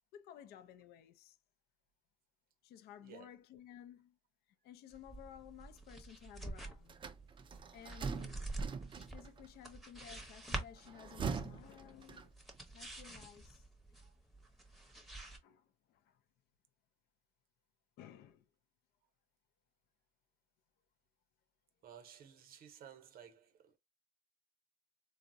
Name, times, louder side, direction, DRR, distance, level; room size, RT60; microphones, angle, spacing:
voice 1, 0.1-1.4 2.6-4.2 4.6-7.0 7.7-8.4 9.1-12.4 12.7-13.6 15.0-15.1 15.4-16.2 18.0-18.4, left 10 dB, 75° left, 0.4 m, -55 dB
voice 2, 3.0-3.3 14.0-14.1 21.8-23.8, right 8 dB, 60° right, 0.7 m, -56 dB
sound 1, 4.9-15.4, right 2 dB, ahead, 0.7 m, -47 dB
sound 2, 6.9-9.5 10.8-12.6, right 5 dB, 30° right, 0.4 m, -43 dB
3.5 x 2.0 x 2.5 m
cardioid pair, 110°, 17 cm